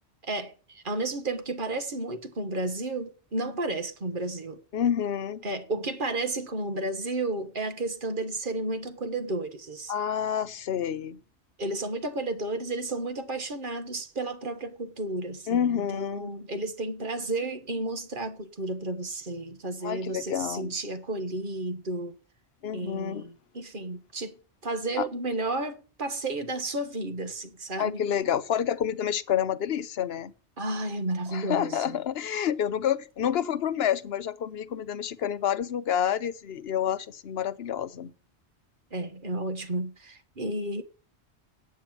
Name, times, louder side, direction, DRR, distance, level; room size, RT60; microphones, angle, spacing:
voice 1, 0.2-4.6 5.4-9.9 11.6-22.1 22.7-24.4 24.6-28.0 30.6-32.0 38.9-40.8, right 2 dB, 50° right, 1.6 m, -32 dB
voice 2, 4.7-5.4 9.9-11.2 15.5-16.3 19.8-20.7 22.6-23.2 25.0-25.1 27.8-30.3 31.3-38.1, left 9 dB, 65° left, 1.0 m, -28 dB
8.4 x 7.4 x 8.9 m
omnidirectional pair, 1.2 m